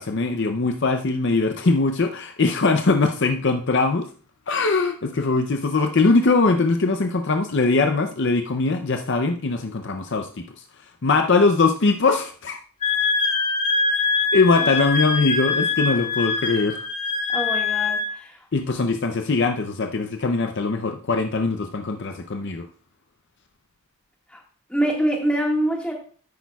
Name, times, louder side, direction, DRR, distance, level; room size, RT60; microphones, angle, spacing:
voice 1, 0.0-4.1 4.5-12.6 14.3-16.9 18.5-22.7, left 3 dB, 55° left, 5 dB, 0.6 m, -21 dB
Wind instrument woodwind instrument, 12.8-18.1, left 4 dB, 35° left, 2.2 m, -23 dB
voice 2, 17.3-18.4 24.3-24.4 24.7-25.9, right 1 dB, 5° left, -1 dB, 1.7 m, -24 dB
10.5 x 8.4 x 2.3 m, 0.42 s
head